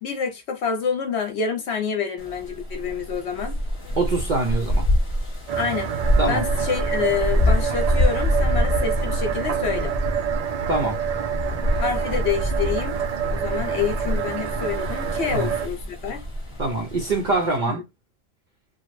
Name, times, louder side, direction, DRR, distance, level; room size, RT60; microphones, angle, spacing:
voice 1, 0.0-3.6 5.6-5.9 6.3-9.9 11.8-13.0 13.3-16.2 17.6-17.8, left 6 dB, 60° left, 1.0 m, -27 dB
sound 1, 2.2-17.6, equal, 25° left, 0.9 m, -26 dB
voice 2, 4.0-4.9 6.2-6.4 10.7-11.0 15.3-15.5 16.6-17.8, right 2 dB, 50° right, 0.6 m, -24 dB
sound 2, 5.5-15.7, right 8 dB, 85° right, 0.3 m, -27 dB
3.0 x 2.3 x 3.1 m
omnidirectional pair, 1.3 m